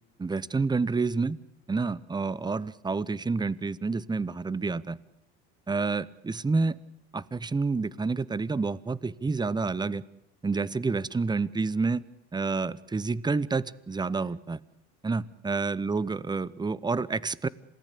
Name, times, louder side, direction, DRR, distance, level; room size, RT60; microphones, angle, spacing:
voice 1, 0.2-1.4 1.7-5.0 5.7-6.8 7.1-10.0 10.4-12.0 12.3-14.6 15.0-17.5, right 4 dB, 15° right, 20 dB, 0.8 m, -29 dB
27.0 x 18.5 x 8.5 m, 0.84 s
supercardioid pair, 90°, 32 cm